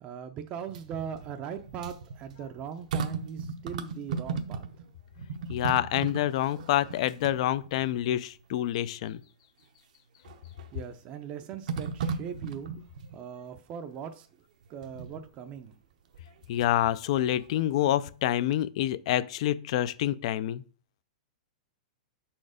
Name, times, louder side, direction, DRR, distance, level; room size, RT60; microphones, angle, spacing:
voice 1, 0.0-4.6 10.7-12.9 13.1-14.3 14.7-15.7, right 8 dB, 30° right, 0.5 m, -40 dB
sound 1, 0.6-4.9 5.2-8.0 8.5-8.6 10.2-10.7 11.7-13.2 14.8-15.2 16.1-16.9 17.3-18.3 18.5-18.6, right 5 dB, 70° right, 0.7 m, -37 dB
voice 2, 5.5-9.2 16.5-20.6, left 13 dB, 55° left, 0.4 m, -27 dB
5.8 x 4.4 x 4.9 m
hypercardioid pair, 150°, 4 cm